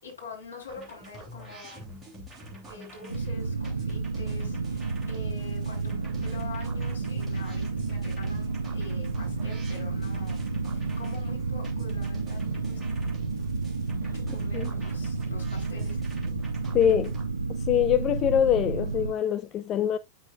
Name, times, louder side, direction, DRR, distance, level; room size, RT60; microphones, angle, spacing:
voice 1, 0.0-1.8 2.6-12.8 14.0-16.0, left 4 dB, 70° left, 4.5 m, -45 dB
sound 1, 0.7-17.2, equal, 10° right, 3.1 m, -45 dB
sound 2, 3.1-19.1, right 4 dB, 80° right, 0.6 m, -31 dB
voice 2, 16.7-17.1 17.6-20.0, left 10 dB, 30° left, 0.4 m, -24 dB
8.3 x 6.4 x 2.5 m
figure-of-eight pair, 90°, 0 cm